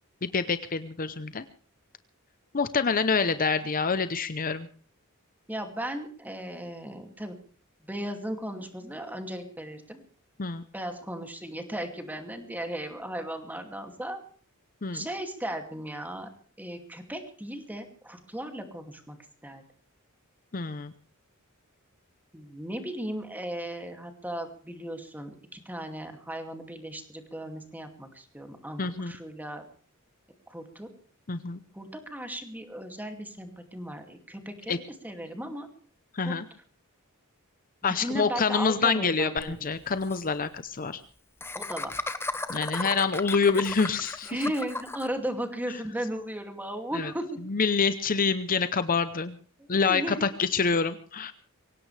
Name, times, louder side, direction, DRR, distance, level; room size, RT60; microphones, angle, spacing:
voice 1, 0.2-1.4 2.5-4.7 10.4-10.6 14.8-15.1 20.5-20.9 28.8-29.1 31.3-31.6 34.7-34.8 36.1-36.5 37.8-41.0 42.5-44.3 46.9-47.1 47.5-49.3 49.7-51.3, left 5 dB, 40° left, 12 dB, 0.8 m, -26 dB
voice 2, 5.5-7.4 7.9-10.0 10.7-14.2 14.9-16.3 16.6-19.2 19.4-19.6 22.3-29.6 30.5-30.9 31.7-34.8 35.0-35.7 36.2-36.3 37.9-39.5 41.5-41.9 44.3-47.4 49.6-50.3, right 1 dB, 10° right, 5 dB, 2.5 m, -36 dB
Laughter, 39.4-39.5 39.7-39.8 40.0-40.2 41.4-45.1, left 2 dB, 10° left, 1.0 m, -34 dB
24.0 x 17.5 x 3.4 m, 0.44 s
head